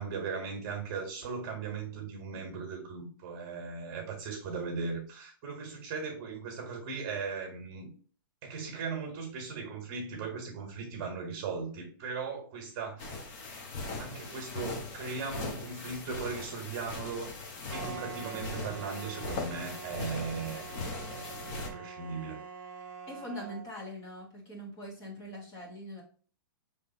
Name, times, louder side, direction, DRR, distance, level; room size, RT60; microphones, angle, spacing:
voice 1, 0.0-7.9 8.4-13.2 14.0-17.3 17.7-20.7 21.1-22.4, right 5 dB, 35° right, 3 dB, 1.5 m, -38 dB
sound 1, 13.0-21.7, left 3 dB, 40° left, 1.1 m, -40 dB
sound 2, 17.7-23.7, right 6 dB, 55° right, 1.3 m, -45 dB
voice 2, 23.1-26.0, equal, 25° left, -2 dB, 1.5 m, -42 dB
5.4 x 3.3 x 2.9 m, 0.42 s
hypercardioid pair, 155°, 12 cm